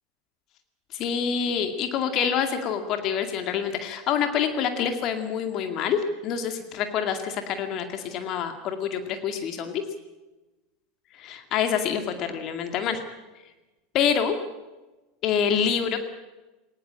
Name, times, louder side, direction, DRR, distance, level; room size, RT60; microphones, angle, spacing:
voice 1, 0.9-9.8 11.2-13.0 13.9-14.4 15.2-16.0, left 7 dB, 45° left, 7 dB, 2.2 m, -26 dB
19.5 x 19.0 x 8.7 m, 1.1 s
figure-of-eight pair, 80°, 0 cm